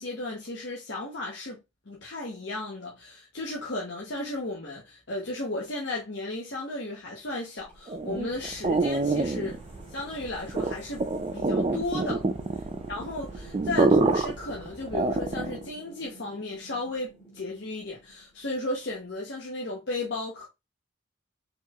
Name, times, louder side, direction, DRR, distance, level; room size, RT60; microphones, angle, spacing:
voice 1, 0.0-1.6 1.9-9.6 9.9-11.0 11.3-12.2 12.9-20.5, left 2 dB, 60° left, 1.0 m, -34 dB
sound 1, 7.6-18.6, right 2 dB, 10° left, 2.4 m, -52 dB
sound 2, 7.9-15.7, right 3 dB, 30° right, 0.3 m, -27 dB
4.6 x 4.0 x 2.4 m
head